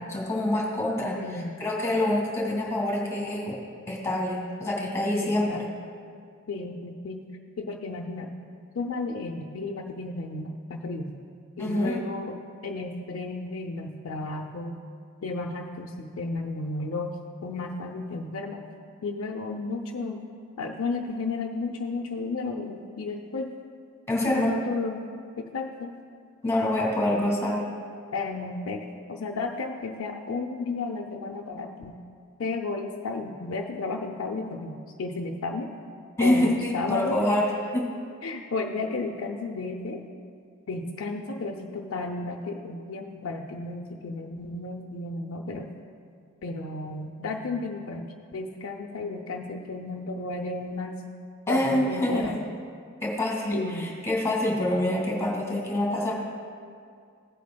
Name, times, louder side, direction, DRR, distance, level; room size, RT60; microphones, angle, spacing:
voice 1, 0.0-1.2 1.6-3.6 3.9-5.7 11.6-12.0 24.1-24.5 26.4-27.7 36.2-37.9 51.5-52.4 53.0-56.1, left 1 dB, 15° left, -2 dB, 1.9 m, -26 dB
voice 2, 1.2-1.6 5.2-5.6 6.5-7.2 7.6-8.3 8.7-11.1 11.6-12.4 12.6-14.8 15.2-18.6 19.0-20.2 20.6-23.5 24.2-25.1 25.4-25.9 28.1-32.0 32.4-35.7 36.2-37.2 38.2-40.0 40.7-45.7 46.4-48.0 48.3-51.0 51.5-52.4 53.5-54.0, left 3 dB, 70° left, 1 dB, 0.5 m, -33 dB
16.0 x 8.3 x 2.2 m, 2.2 s
head